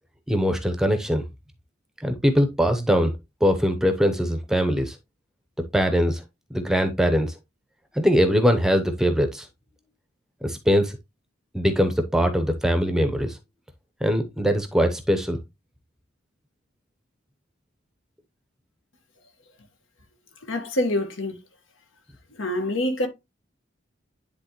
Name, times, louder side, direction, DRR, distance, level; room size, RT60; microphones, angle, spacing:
voice 1, 0.3-1.2 2.0-3.1 3.4-5.0 5.7-6.2 6.5-7.3 7.9-9.5 10.4-11.0 11.5-13.4 14.0-15.4, equal, 5° right, 0.7 m, -22 dB
voice 2, 20.5-21.4 22.4-23.1, left 1 dB, 80° left, 1.5 m, -25 dB
10.0 x 3.6 x 3.0 m
head